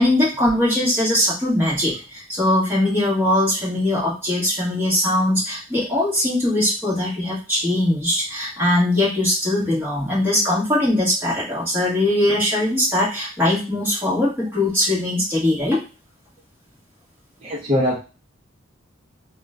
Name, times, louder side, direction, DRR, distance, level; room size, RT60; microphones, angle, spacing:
voice 1, 0.0-15.8, left 1 dB, 10° right, -6 dB, 1.3 m, -21 dB
voice 2, 17.4-18.0, left 1 dB, 25° right, -4 dB, 0.5 m, -21 dB
2.9 x 2.2 x 3.5 m, 0.32 s
head